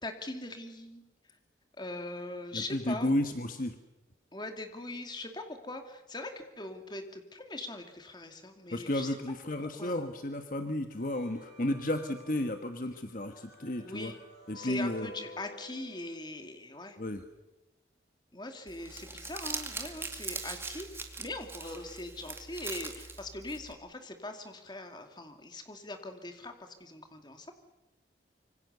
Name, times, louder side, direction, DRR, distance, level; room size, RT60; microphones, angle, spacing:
voice 1, 0.0-1.0 1.8-3.2 4.3-9.2 9.6-10.0 13.8-14.2 14.5-17.0 18.3-27.5, left 2 dB, 25° left, 5 dB, 2.4 m, -41 dB
voice 2, 2.5-3.7 8.7-14.1 14.5-15.1 17.0-17.2, left 1 dB, 50° left, 7 dB, 1.3 m, -33 dB
sound 1, 10.9-16.2, left 1 dB, 70° left, 5.8 m, -51 dB
Crumpling crinkling, 18.7-23.7, right 4 dB, 15° right, 2.1 m, -41 dB
26.0 x 24.5 x 6.9 m, 1.0 s
head